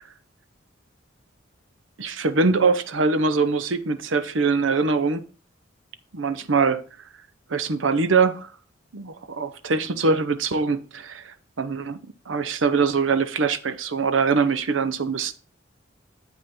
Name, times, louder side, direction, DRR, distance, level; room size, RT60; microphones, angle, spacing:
voice 1, 2.0-5.2 6.1-6.8 7.5-8.5 8.9-12.0 12.3-15.3, right 4 dB, 85° right, 0.7 m, -23 dB
7.8 x 5.4 x 4.2 m
head